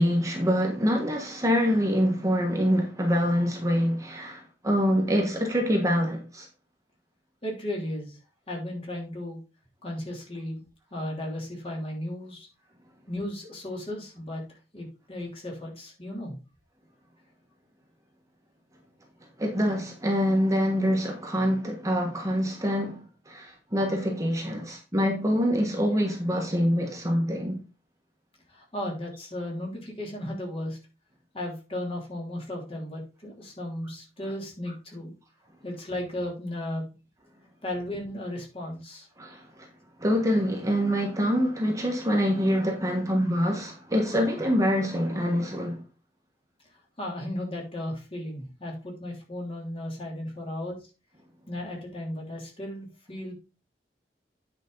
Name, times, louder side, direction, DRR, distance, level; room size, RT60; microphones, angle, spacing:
voice 1, 0.0-6.5 19.4-23.0 23.3-27.6 39.2-39.4 40.0-45.8, equal, 20° right, 1.4 m, -25 dB
voice 2, 7.4-8.2 8.5-9.4 9.8-10.6 10.9-12.5 13.1-14.4 14.7-16.4 28.5-30.8 31.3-35.1 35.6-36.9 37.6-39.1 47.0-50.8 51.5-53.3, left 1 dB, 35° left, 3.1 m, -35 dB
9.3 x 5.2 x 3.9 m
head